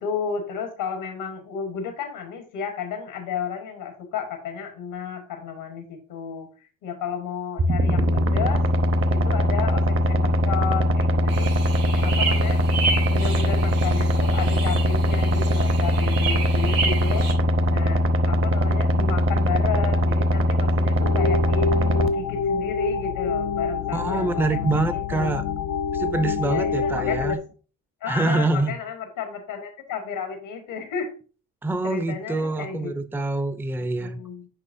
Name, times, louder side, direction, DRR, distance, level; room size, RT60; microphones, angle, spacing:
voice 1, 0.0-6.5 6.8-8.6 9.1-11.5 11.9-12.6 13.1-17.3 17.7-21.7 22.1-25.3 26.4-27.4 28.0-31.1 31.8-32.9 34.0-34.5, left 6 dB, 85° left, 1.3 m, -32 dB
sound 1, 7.6-22.1, equal, 35° right, 0.9 m, -21 dB
sound 2, 11.3-17.3, right 4 dB, 80° right, 1.9 m, -31 dB
sound 3, 21.0-27.4, left 5 dB, 60° left, 0.5 m, -26 dB
voice 2, 23.9-25.4 25.9-27.4 28.1-28.7 31.6-34.2, right 3 dB, 5° right, 0.5 m, -25 dB
7.9 x 4.9 x 2.6 m
supercardioid pair, 75°, 36 cm